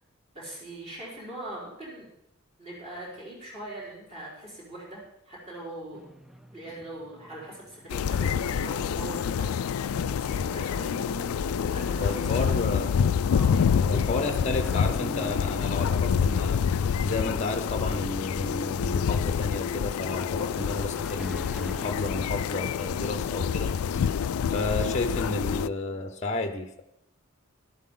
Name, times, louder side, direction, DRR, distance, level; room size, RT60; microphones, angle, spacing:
voice 1, 0.3-2.1 2.6-6.1 6.5-12.7 13.3-14.1, right 1 dB, 30° right, -7 dB, 4.6 m, -42 dB
sound 1, 5.9-23.6, equal, ahead, 0.4 m, -46 dB
sound 2, 7.9-25.7, left 7 dB, 80° left, 0.3 m, -27 dB
voice 2, 12.0-12.9 13.5-26.8, left 2 dB, 30° left, 7 dB, 0.8 m, -32 dB
12.5 x 12.0 x 3.8 m, 0.78 s
head